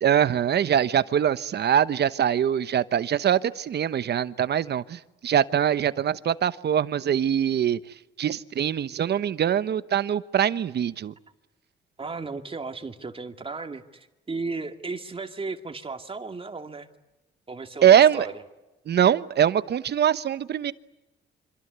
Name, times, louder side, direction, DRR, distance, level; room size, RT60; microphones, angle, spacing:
voice 1, 0.0-7.8 8.2-11.1 17.8-18.3 18.9-20.7, right 9 dB, 55° right, 14 dB, 1.1 m, -23 dB
voice 2, 12.0-16.9 17.5-18.3, right 4 dB, 30° right, 6 dB, 2.4 m, -35 dB
27.5 x 26.0 x 8.2 m, 1.0 s
cardioid pair, 90°, 20 cm